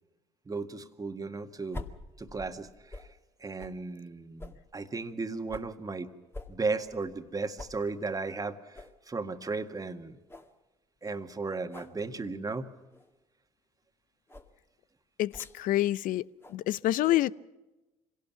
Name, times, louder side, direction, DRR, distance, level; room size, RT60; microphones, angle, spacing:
voice 1, 0.5-1.9 2.2-3.0 3.4-6.1 6.5-10.2 11.0-12.7, right 3 dB, 20° right, 1.8 m, -35 dB
sound 1, 1.7-3.1 3.6-3.8 4.4-5.7 6.3-7.3 7.6-7.8 8.2-8.3 8.7-9.0 9.4-9.5 9.9-10.0 10.3-10.5 11.7-12.0 12.9-13.1 14.3-14.5 15.3-15.6 16.4-16.6, left 2 dB, 15° left, 2.1 m, -45 dB
voice 2, 15.2-17.3, left 15 dB, 60° left, 0.6 m, -27 dB
25.5 x 17.5 x 6.0 m
hypercardioid pair, 60°, 16 cm